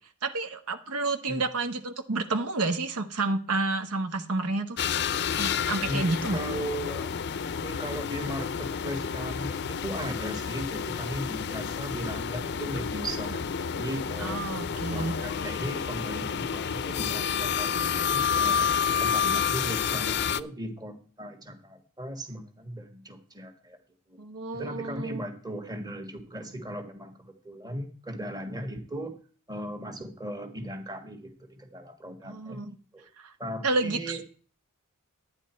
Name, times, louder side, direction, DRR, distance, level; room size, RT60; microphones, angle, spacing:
voice 1, 0.2-4.8 5.4-6.4 14.2-15.2 19.2-19.4 24.2-25.2 32.2-32.7 33.2-33.3 33.6-34.2, right 3 dB, 80° right, 8 dB, 1.1 m, -30 dB
sound 1, 4.8-20.4, left 7 dB, 50° left, 0.5 m, -29 dB
voice 2, 5.9-7.1 7.6-18.7 19.0-23.8 24.1-24.2 24.5-29.1 29.5-32.6 32.9-33.1 33.4-34.2, equal, 20° right, 6 dB, 1.5 m, -37 dB
11.5 x 9.6 x 4.4 m, 0.41 s
head